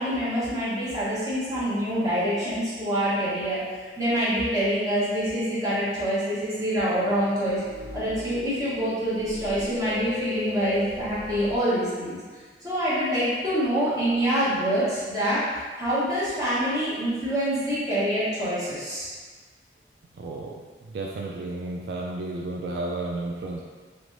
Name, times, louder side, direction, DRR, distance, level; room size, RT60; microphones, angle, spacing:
voice 1, 0.0-3.6 4.0-7.6 7.9-12.2 12.6-19.1, equal, 20° right, -10 dB, 1.0 m, -26 dB
sound 1, 6.9-11.6, left 2 dB, 65° left, 0.4 m, -39 dB
voice 2, 20.2-23.6, right 2 dB, 65° right, -2 dB, 0.3 m, -32 dB
3.3 x 3.0 x 2.6 m, 1.5 s
head